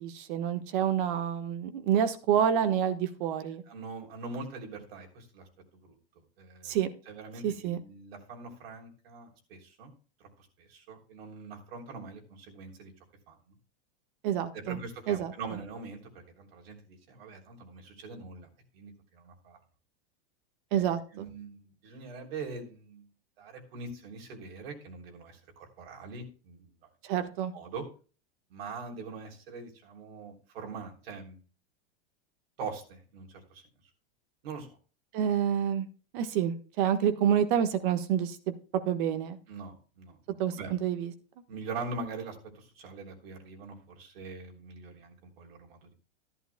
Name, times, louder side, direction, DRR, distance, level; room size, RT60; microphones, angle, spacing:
voice 1, 0.0-3.6 6.6-6.9 7.4-7.8 14.2-14.8 15.1-15.6 20.7-21.0 27.0-27.5 35.1-35.9 36.1-38.5 38.8-39.4 40.4-41.1, right 9 dB, 60° right, 9 dB, 1.4 m, -28 dB
voice 2, 3.7-5.5 5.7-6.0 6.4-6.8 7.1-9.9 10.2-12.9 13.3-13.4 14.5-18.5 18.7-19.6 20.7-23.0 23.4-26.7 27.5-27.8 28.5-31.4 32.6-33.6 34.4-34.7 39.5-40.7 41.5-45.9, right 4 dB, 75° right, 2 dB, 3.5 m, -43 dB
14.0 x 11.0 x 2.2 m, 0.36 s
supercardioid pair, 145°, 30 cm